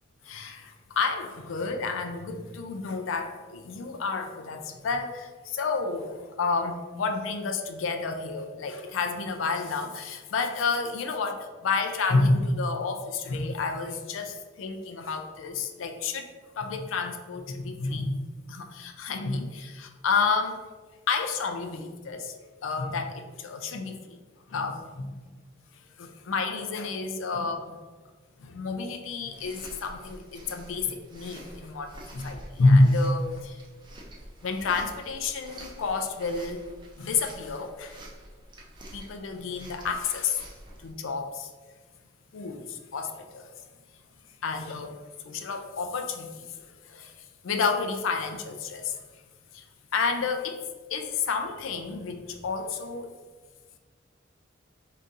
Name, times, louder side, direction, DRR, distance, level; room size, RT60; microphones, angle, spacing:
voice 1, 0.2-16.3 16.6-18.2 18.5-20.6 21.1-22.3 22.6-24.2 24.5-25.1 26.0-27.8 28.4-33.6 34.4-36.6 37.0-38.0 38.9-40.5 40.8-41.5 42.3-43.5 44.4-45.0 45.2-47.1 47.4-49.0 49.5-49.6 49.9-50.6 50.9-53.1, left 3 dB, 80° left, 5 dB, 0.4 m, -29 dB
sound 1, 29.2-40.9, right 1 dB, 25° right, 0.6 m, -47 dB
3.8 x 2.8 x 3.6 m, 1.4 s
head